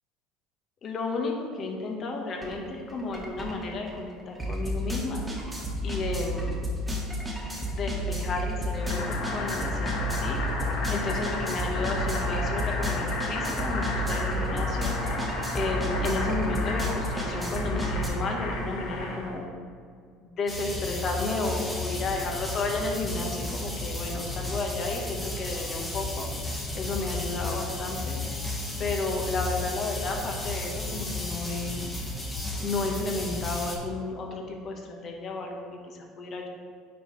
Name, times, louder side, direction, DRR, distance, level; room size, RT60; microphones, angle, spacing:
voice 1, 0.8-5.2 5.8-6.6 7.7-10.4 10.9-15.0 15.5-19.5 20.2-26.3 26.7-28.2 28.8-31.9 32.6-36.5, left 3 dB, 45° left, 1 dB, 1.3 m, -32 dB
sound 1, 2.4-2.6 2.9-18.1, equal, 10° right, 1.5 m, -31 dB
Boiling, 8.7-19.4, left 2 dB, 65° left, 1.6 m, -33 dB
sound 2, 20.5-33.8, left 2 dB, 15° left, 1.5 m, -33 dB
9.0 x 4.2 x 3.3 m, 2.1 s
supercardioid pair, 90°, 0 cm